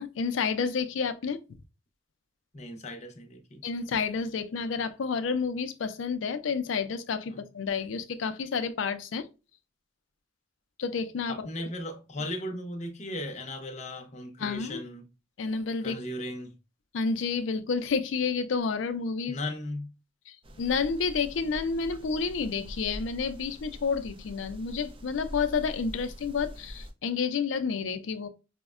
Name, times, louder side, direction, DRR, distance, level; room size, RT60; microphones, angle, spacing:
voice 1, 0.0-1.4 3.6-9.3 10.8-11.5 14.4-14.8 15.4-16.0 16.9-19.4 20.3-28.3, left 5 dB, 85° left, 0.4 m, -30 dB
voice 2, 2.5-3.6 7.3-7.4 11.3-15.1 15.8-16.5 19.3-19.9, left 1 dB, 35° left, 0.6 m, -37 dB
sound 1, 20.4-26.9, equal, 30° right, 0.4 m, -44 dB
5.1 x 2.1 x 2.3 m
head